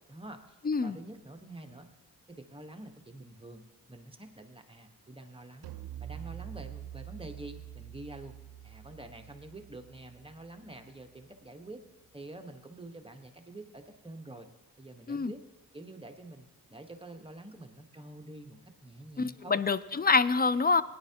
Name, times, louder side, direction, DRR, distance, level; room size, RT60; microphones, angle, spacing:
voice 1, 0.1-1.9 2.3-5.7 6.0-11.8 12.1-14.5 14.8-15.4 15.7-19.6, right 2 dB, 15° right, 5 dB, 1.2 m, -47 dB
voice 2, 0.6-1.0 15.1-15.3 19.2-20.8, left 4 dB, 25° left, 16 dB, 0.5 m, -26 dB
sound 1, 5.6-11.0, right 11 dB, 90° right, 0.6 m, -46 dB
17.0 x 10.0 x 2.9 m, 1.0 s
cardioid pair, 50°, 37 cm